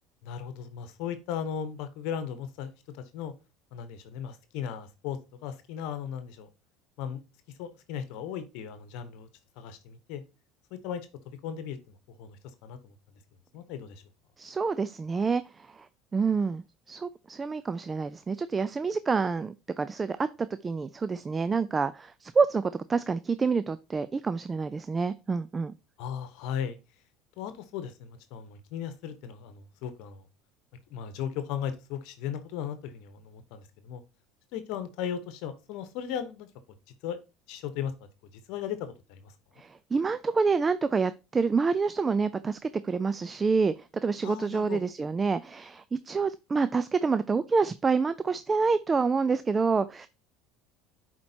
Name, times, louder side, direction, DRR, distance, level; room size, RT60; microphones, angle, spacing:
voice 1, 0.2-3.3 3.7-6.5 7.0-7.2 7.6-9.3 9.6-10.2 10.8-11.1 11.4-12.9 13.5-14.0 26.0-26.8 27.4-30.2 30.9-34.0 34.5-36.5 37.0-37.2 37.5-37.9 38.5-39.3 44.2-44.8, left 8 dB, 70° left, 11 dB, 1.0 m, -37 dB
voice 2, 14.4-15.9 16.1-25.7 39.6-50.1, right 4 dB, 25° right, 14 dB, 0.4 m, -28 dB
10.5 x 4.4 x 2.8 m, 0.28 s
hypercardioid pair, 85°, 0 cm